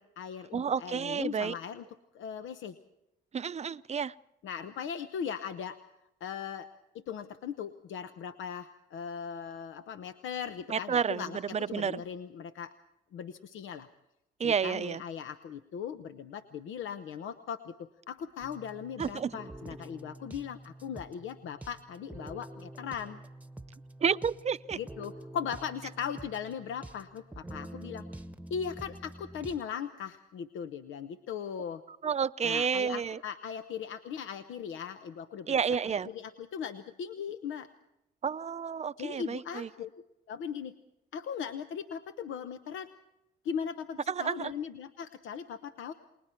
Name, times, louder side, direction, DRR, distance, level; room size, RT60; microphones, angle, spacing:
voice 1, 0.0-1.8 2.1-2.7 4.4-5.8 6.2-6.7 6.9-11.4 11.7-12.7 13.1-13.9 14.4-23.2 24.8-28.0 28.5-31.8 32.4-35.5 35.8-37.7 39.0-39.9 40.3-40.7 41.1-42.9 43.4-45.9, left 7 dB, 80° left, 9 dB, 0.9 m, -39 dB
voice 2, 0.5-1.5 3.3-4.1 10.7-12.0 14.4-15.0 19.0-19.3 24.0-24.8 32.0-33.2 35.5-36.1 38.2-39.7 44.1-44.5, right 6 dB, 35° right, 14 dB, 0.6 m, -30 dB
sound 1, 18.4-29.6, right 1 dB, 10° right, 1.1 m, -47 dB
30.0 x 20.5 x 4.5 m, 0.87 s
cardioid pair, 90°, 20 cm